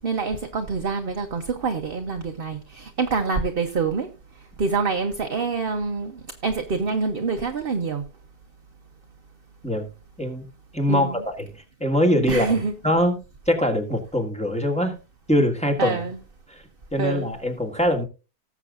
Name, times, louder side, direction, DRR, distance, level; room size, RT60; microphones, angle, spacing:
voice 1, 0.0-4.1 4.6-8.0 10.9-11.2 12.3-12.7 15.8-16.2 17.0-17.3, right 4 dB, 40° right, 1.0 m, -26 dB
voice 2, 10.2-10.5 10.7-11.1 11.8-12.5 12.8-13.2 13.4-15.0 15.3-16.0 16.5-16.6 16.9-18.0, left 1 dB, 5° left, 1.6 m, -22 dB
19.0 x 7.3 x 2.5 m
omnidirectional pair, 1.7 m